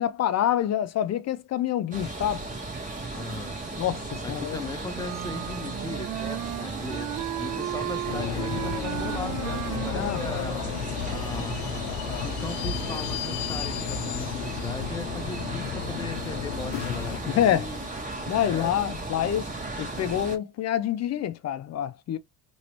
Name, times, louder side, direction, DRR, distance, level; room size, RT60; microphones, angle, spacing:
voice 1, 0.0-2.4 3.8-4.7 9.9-10.2 17.3-17.7 18.3-19.5 19.8-22.2, left 10 dB, 45° left, 0.6 m, -26 dB
sound 1, 1.9-20.4, right 2 dB, 20° right, 1.5 m, -36 dB
voice 2, 3.1-3.6 4.2-10.7 11.0-17.9 18.4-18.7, left 2 dB, 10° left, 0.8 m, -38 dB
Wind instrument woodwind instrument, 4.9-10.8, right 15 dB, 55° right, 0.4 m, -35 dB
sound 2, 8.1-17.2, left 10 dB, 85° left, 0.6 m, -33 dB
3.1 x 2.7 x 3.0 m
cardioid pair, 100°, 36 cm